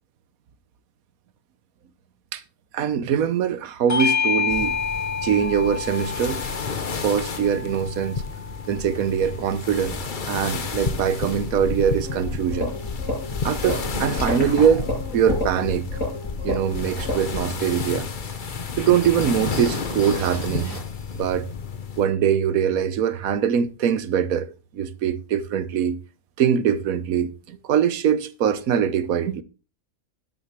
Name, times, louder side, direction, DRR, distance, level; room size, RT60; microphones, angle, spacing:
voice 1, 2.7-4.8 5.2-6.5 7.0-8.2 8.7-12.7 13.4-14.8 15.1-15.9 16.4-18.1 18.8-20.8 21.1-21.5 22.0-24.5 24.7-26.0 26.4-29.4, right 8 dB, 90° right, 1.3 m, -22 dB
Bell / Doorbell, 3.9-8.7, left 6 dB, 15° left, 0.8 m, -28 dB
sound 1, 4.5-22.1, left 5 dB, 40° left, 1.0 m, -32 dB
sound 2, 12.0-21.4, left 2 dB, 70° left, 6.9 m, -31 dB
12.0 x 10.5 x 3.2 m
omnidirectional pair, 1.4 m